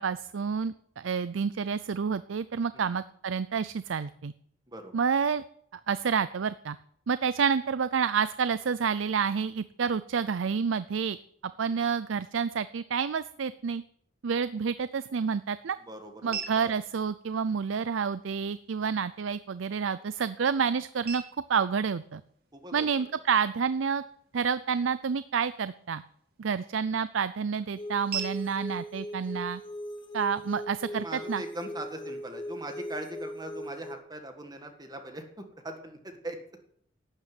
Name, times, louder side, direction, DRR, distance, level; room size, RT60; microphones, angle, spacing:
voice 1, 0.0-4.3 4.9-5.4 5.7-6.8 7.1-11.2 11.6-13.8 14.2-15.8 16.2-21.2 21.5-22.2 22.7-24.0 24.3-26.0 26.4-29.6 30.1-31.4, right 6 dB, 80° right, 15 dB, 0.5 m, -29 dB
sound 1, 14.5-30.5, right 7 dB, 50° right, 3.0 m, -47 dB
voice 2, 15.8-16.7 22.5-22.9 30.9-36.4, right 1 dB, 20° right, 5 dB, 1.8 m, -41 dB
sound 2, 27.8-34.0, equal, 25° left, 1.3 m, -39 dB
12.5 x 8.9 x 9.3 m, 0.68 s
head